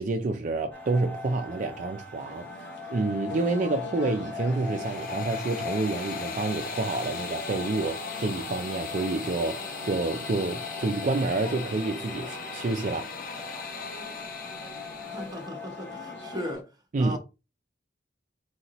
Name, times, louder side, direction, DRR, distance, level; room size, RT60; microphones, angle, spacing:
voice 1, 0.0-2.5 2.9-13.1 16.9-17.2, right 3 dB, 45° right, 0.4 m, -28 dB
sound 1, 0.7-16.5, left 4 dB, 10° left, 0.8 m, -41 dB
sound 2, 2.2-16.6, left 2 dB, 70° left, 1.2 m, -44 dB
sound 3, 4.3-15.5, left 5 dB, 50° left, 0.8 m, -38 dB
voice 2, 15.1-16.6 17.0-17.2, equal, 20° right, 1.0 m, -36 dB
4.2 x 3.9 x 2.9 m
head